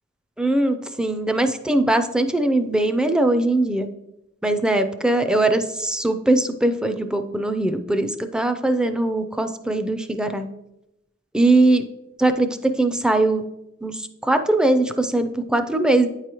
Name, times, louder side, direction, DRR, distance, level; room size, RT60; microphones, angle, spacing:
voice 1, 0.4-3.9 4.4-10.5 11.3-11.8 12.2-13.4 13.8-16.1, right 2 dB, 5° right, 8 dB, 0.3 m, -21 dB
8.9 x 4.8 x 3.0 m, 0.90 s
head